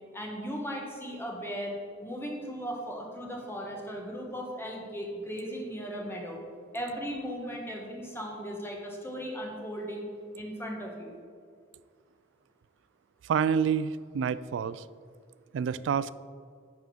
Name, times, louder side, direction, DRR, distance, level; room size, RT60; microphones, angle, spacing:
voice 1, 0.1-1.7 2.0-6.4 6.7-10.1 10.3-11.2, equal, 15° left, -1 dB, 1.4 m, -37 dB
voice 2, 13.2-14.8 15.5-16.1, right 7 dB, 75° right, 17 dB, 0.3 m, -28 dB
9.0 x 3.8 x 7.1 m, 2.1 s
head